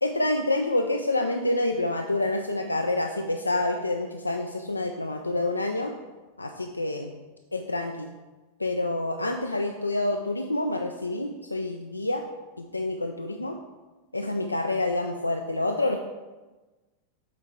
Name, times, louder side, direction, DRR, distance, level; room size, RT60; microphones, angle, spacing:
voice 1, 0.0-5.9 6.4-7.2 7.5-8.1 8.6-12.2 12.6-13.6 14.1-16.0, left 2 dB, 85° left, 4 dB, 0.3 m, -27 dB
7.5 x 4.5 x 3.7 m, 1.2 s
figure-of-eight pair, 90°, 0 cm